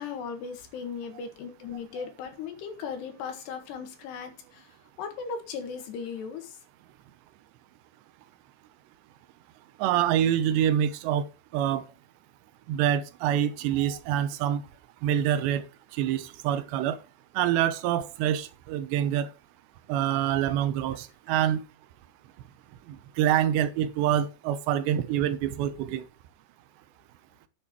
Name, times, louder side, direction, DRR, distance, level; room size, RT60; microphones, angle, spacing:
voice 1, 0.0-4.7 5.0-6.6, left 6 dB, 75° left, 3.7 m, -37 dB
voice 2, 9.8-11.3 11.5-11.8 12.7-14.6 15.0-15.6 16.0-17.0 17.4-19.3 19.9-21.6 23.2-26.0, right 10 dB, 90° right, 3.0 m, -26 dB
10.5 x 7.1 x 4.3 m
omnidirectional pair, 5.0 m